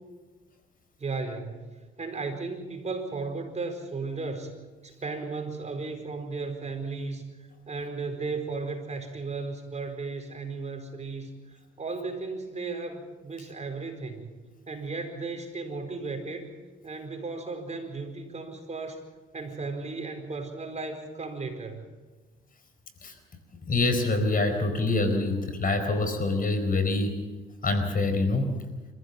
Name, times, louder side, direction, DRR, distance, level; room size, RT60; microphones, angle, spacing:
voice 1, 1.0-4.5 4.8-7.3 7.7-11.3 11.8-14.3 14.7-16.5 16.8-19.0 19.3-21.9, right 3 dB, 35° right, 5 dB, 4.6 m, -35 dB
voice 2, 23.7-27.2 27.6-28.6, left 2 dB, 45° left, 7 dB, 4.5 m, -25 dB
27.0 x 15.0 x 7.3 m, 1.3 s
cardioid pair, 80°, 21 cm